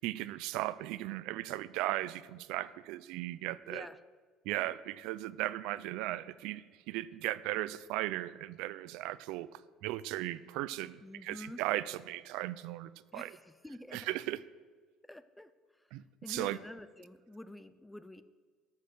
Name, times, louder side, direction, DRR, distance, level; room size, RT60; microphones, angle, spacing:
voice 1, 0.0-3.9 4.4-13.4 13.9-14.4 15.9-16.6, right 16 dB, 70° right, 17 dB, 0.4 m, -37 dB
voice 2, 3.6-4.0 11.0-11.6 13.1-14.1 15.1-15.5 16.2-18.2, left 1 dB, 5° left, 13 dB, 0.3 m, -47 dB
13.5 x 6.5 x 6.6 m, 1.5 s
cardioid pair, 175°, 0 cm